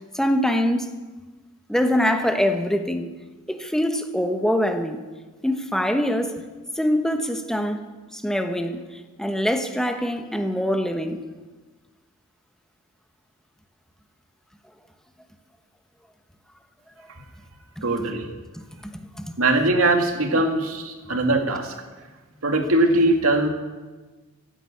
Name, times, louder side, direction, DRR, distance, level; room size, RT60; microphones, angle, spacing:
voice 1, 0.1-0.9 1.7-3.1 3.5-5.0 5.4-6.4 6.8-7.8 8.1-8.8 9.2-11.2 17.8-17.9 18.8-19.3, equal, 5° left, 6 dB, 1.1 m, -24 dB
voice 2, 17.8-18.3 19.4-21.8 22.4-23.5, right 2 dB, 90° right, 4 dB, 2.1 m, -21 dB
16.0 x 10.0 x 8.5 m, 1.3 s
head